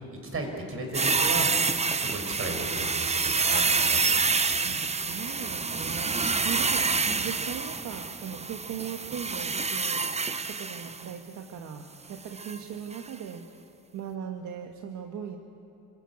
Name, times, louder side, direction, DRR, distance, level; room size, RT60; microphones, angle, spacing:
voice 1, 0.1-4.2, right 2 dB, 45° right, 3 dB, 5.7 m, -35 dB
sound 1, 0.9-11.1 12.4-12.6 12.9-13.0, right 4 dB, 20° right, 0.8 m, -27 dB
voice 2, 4.6-10.0 10.4-13.5 13.9-15.4, right 8 dB, 75° right, 4 dB, 1.5 m, -39 dB
28.0 x 16.0 x 8.5 m, 2.9 s
cardioid pair, 90°, 30 cm